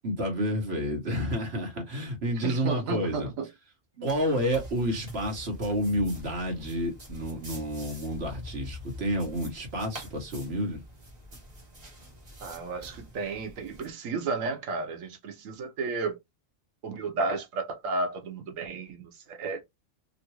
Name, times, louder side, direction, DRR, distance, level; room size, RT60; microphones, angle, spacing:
voice 1, 0.0-3.3 4.0-10.8, equal, 55° right, 1.3 m, -30 dB
voice 2, 2.4-3.5 12.4-16.2 16.8-19.6, right 4 dB, 85° right, 1.2 m, -33 dB
sound 1, 4.0-13.9, equal, 35° right, 1.2 m, -45 dB
3.1 x 2.5 x 2.9 m
omnidirectional pair, 1.3 m